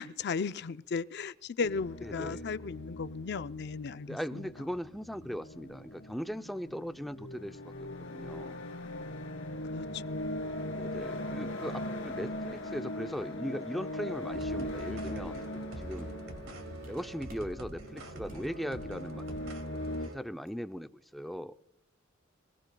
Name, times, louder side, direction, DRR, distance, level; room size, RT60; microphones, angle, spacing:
voice 1, 0.0-4.5 9.7-10.6, left 5 dB, 55° left, 0.5 m, -36 dB
sound 1, 1.6-20.1, left 1 dB, 75° left, 2.7 m, -40 dB
voice 2, 2.0-2.5 4.1-8.6 10.7-16.1 16.9-19.2 20.1-21.5, equal, ahead, 0.5 m, -39 dB
sound 2, 14.3-20.2, right 1 dB, 80° right, 2.5 m, -45 dB
sound 3, 15.5-15.6 16.0-17.6 18.3-18.6 18.9-19.3 19.5-19.7 20.5-20.6, right 1 dB, 45° right, 6.7 m, -55 dB
26.5 x 18.5 x 2.3 m
head